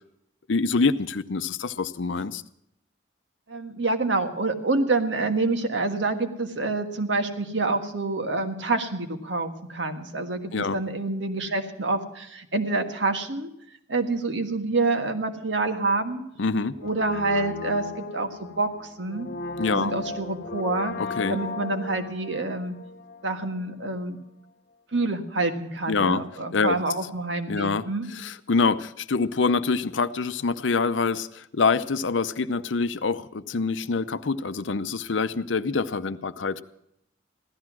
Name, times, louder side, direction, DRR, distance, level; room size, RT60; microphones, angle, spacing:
voice 1, 0.5-2.4 10.5-10.8 16.4-16.8 19.6-19.9 21.0-21.4 25.9-26.2 26.5-26.7 27.5-27.8 28.1-36.6, left 4 dB, 80° left, 13 dB, 0.7 m, -25 dB
voice 2, 3.5-13.5 13.9-16.2 16.8-19.3 19.7-20.9 21.3-22.7 23.2-24.2 24.9-28.1, right 3 dB, 75° right, 6 dB, 1.6 m, -27 dB
Brass instrument, 16.8-23.6 23.9-24.0, left 3 dB, 55° left, 1.0 m, -36 dB
15.5 x 12.5 x 6.1 m, 0.79 s
head